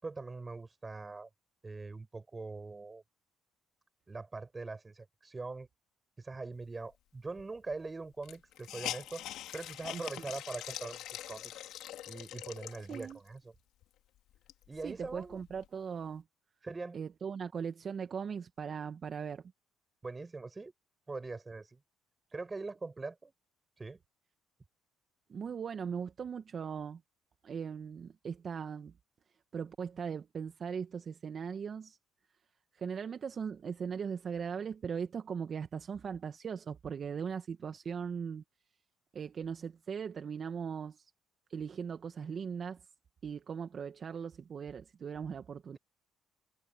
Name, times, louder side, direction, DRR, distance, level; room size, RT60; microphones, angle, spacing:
voice 1, 0.0-1.3 1.6-3.0 4.1-5.7 6.2-9.3 9.5-11.5 12.1-13.5 14.7-15.4 16.6-17.0 20.0-20.7 21.1-21.8 22.3-23.3 23.8-24.0, right 3 dB, 25° right, 5.4 m, -42 dB
Hiss, 7.4-7.5 7.7-7.8 8.2-13.3 13.8-13.9 14.3-15.7, left 13 dB, 75° left, 2.9 m, -44 dB
voice 2, 12.9-13.2 14.8-16.2 16.9-19.5 25.3-27.0 27.4-28.9 29.5-32.0 32.7-38.4 39.1-41.1 41.5-42.8 43.2-45.8, right 6 dB, 45° right, 1.3 m, -39 dB
supercardioid pair, 80°, 0 cm